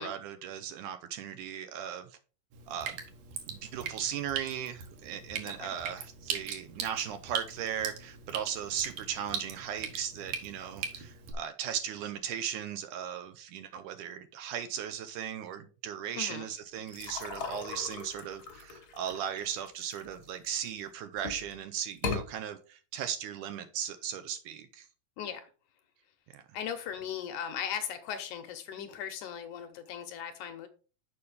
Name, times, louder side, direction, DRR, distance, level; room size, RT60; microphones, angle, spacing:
voice 1, 0.0-2.2 2.7-3.0 3.5-24.9 26.3-26.4, right 9 dB, 80° right, 2.0 m, -37 dB
Drip, 2.5-11.3, right 7 dB, 65° right, 2.5 m, -40 dB
sound 1, 16.9-20.7 21.2-21.5 21.9-22.2, left 4 dB, 50° left, 1.2 m, -38 dB
voice 2, 25.2-25.5 26.5-30.7, left 8 dB, 75° left, 2.1 m, -38 dB
6.9 x 5.5 x 4.9 m
omnidirectional pair, 4.0 m